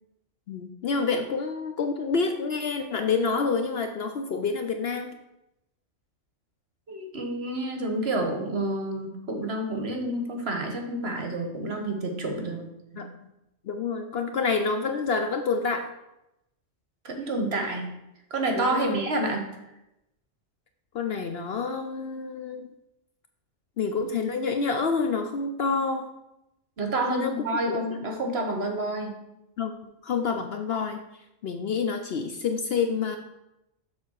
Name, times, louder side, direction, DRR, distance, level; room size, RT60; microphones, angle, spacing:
voice 1, 0.5-5.2 13.0-13.1 13.7-15.9 18.6-19.0 20.9-22.7 23.8-26.1 27.0-27.3 27.7-27.8 29.6-29.7 30.0-31.0 31.4-33.2, left 5 dB, 60° left, 6 dB, 0.7 m, -28 dB
voice 2, 6.9-12.7 12.9-13.0 17.0-17.9 18.3-19.4 26.8-29.2, right 2 dB, 55° right, 3 dB, 1.3 m, -29 dB
6.9 x 4.2 x 6.3 m, 0.88 s
omnidirectional pair, 1.4 m